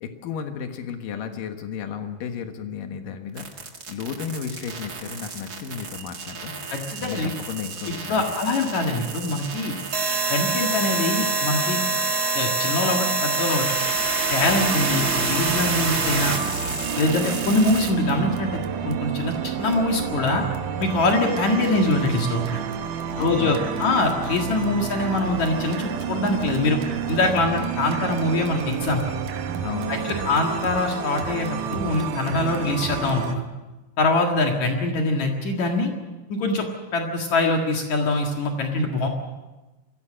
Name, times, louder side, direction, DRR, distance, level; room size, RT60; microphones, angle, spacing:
voice 1, 0.0-6.5 7.0-8.2 23.1-24.0 29.6-30.3, left 7 dB, 90° left, 6 dB, 3.1 m, -33 dB
sound 1, 3.4-17.9, right 3 dB, 35° right, 1.9 m, -27 dB
voice 2, 6.7-7.3 8.1-9.7 10.3-11.8 12.3-13.7 14.3-16.4 17.0-20.4 20.8-22.6 23.2-26.8 27.1-29.0 29.9-33.4 34.0-35.9 36.3-36.7 36.9-39.1, left 2 dB, 65° left, 2 dB, 3.1 m, -23 dB
sound 2, 14.4-33.4, right 7 dB, 75° right, 2.9 m, -30 dB
22.0 x 16.0 x 7.5 m, 1.1 s
omnidirectional pair, 3.7 m